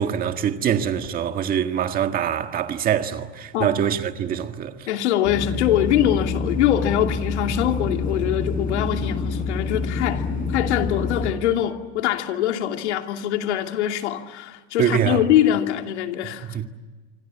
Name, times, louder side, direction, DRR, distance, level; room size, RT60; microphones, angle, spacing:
voice 1, 0.0-4.7 14.8-15.2 16.5-16.6, right 9 dB, 25° right, 1.7 m, -24 dB
voice 2, 4.9-16.6, left 11 dB, 90° left, 2.7 m, -23 dB
sound 1, 5.2-11.3, left 4 dB, 25° left, 5.8 m, -27 dB
26.0 x 26.0 x 8.6 m
supercardioid pair, 160°, 33 cm